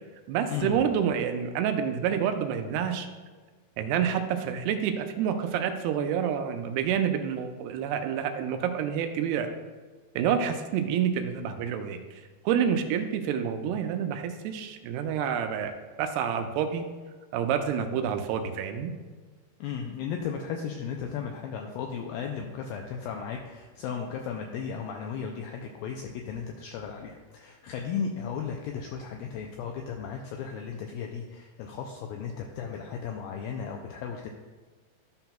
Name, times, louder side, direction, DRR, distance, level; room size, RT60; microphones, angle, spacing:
voice 1, 0.3-3.1 3.8-9.5 10.2-12.0 12.5-15.7 16.0-16.9 17.3-18.9, right 8 dB, 85° right, 7 dB, 2.6 m, -28 dB
voice 2, 19.6-34.3, left 6 dB, 90° left, 2 dB, 2.1 m, -35 dB
12.5 x 5.8 x 2.3 m, 1.4 s
omnidirectional pair, 4.7 m